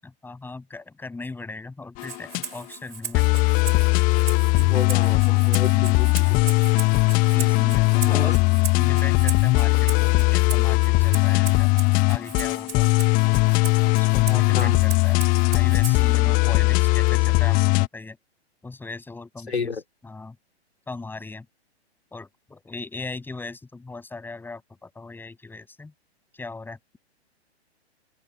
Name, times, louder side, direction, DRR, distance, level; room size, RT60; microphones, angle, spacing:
voice 1, 0.0-3.3 5.7-6.1 7.3-8.4 8.7-11.7 12.1-12.9 13.9-18.2 18.6-19.8 20.0-20.4 20.9-21.5 22.1-25.9 26.3-27.0, left 3 dB, 5° left, 7.3 m, -38 dB
sound 1, 2.0-2.4 3.1-17.9, left 27 dB, 25° left, 1.4 m, -19 dB
Rattle (instrument), 2.0-16.2, right 8 dB, 60° right, 5.9 m, -38 dB
voice 2, 4.5-6.5 8.1-8.3 14.5-14.8 19.5-19.8, left 5 dB, 75° left, 3.3 m, -31 dB
open air
figure-of-eight pair, 115°, 33 cm